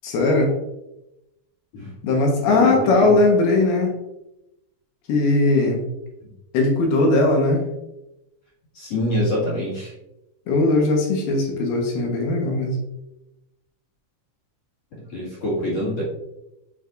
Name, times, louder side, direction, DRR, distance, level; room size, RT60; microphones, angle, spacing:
voice 1, 0.0-0.5 2.0-3.9 5.1-5.9 6.5-7.6 10.5-12.8, left 2 dB, 70° left, 1 dB, 2.8 m, -19 dB
voice 2, 2.5-3.1 8.7-9.9 15.1-16.0, equal, 45° left, -8 dB, 2.3 m, -25 dB
8.2 x 5.7 x 2.5 m, 0.90 s
omnidirectional pair, 5.3 m